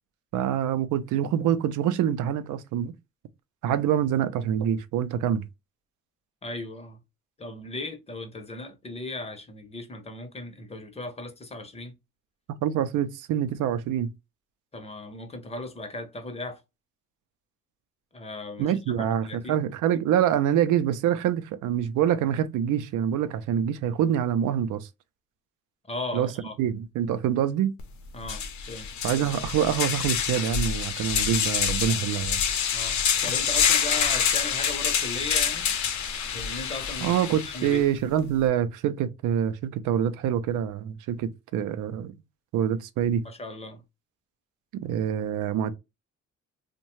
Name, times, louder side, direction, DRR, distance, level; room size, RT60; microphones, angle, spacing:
voice 1, 0.3-2.9 3.6-5.4 12.6-14.1 18.6-24.9 26.1-26.3 26.6-27.7 29.0-32.4 37.0-42.1 42.5-43.2 44.8-45.7, right 9 dB, 80° right, 0.5 m, -25 dB
voice 2, 6.4-7.0 7.4-11.9 14.7-16.6 18.1-19.6 25.9-26.5 28.1-28.9 32.7-35.7 36.3-37.1 37.5-37.8 43.2-43.8, left 2 dB, 20° left, 0.7 m, -37 dB
sound 1, 27.8-27.9 28.2-37.8, left 7 dB, 70° left, 0.7 m, -27 dB
2.7 x 2.2 x 3.0 m
cardioid pair, 90°, 30 cm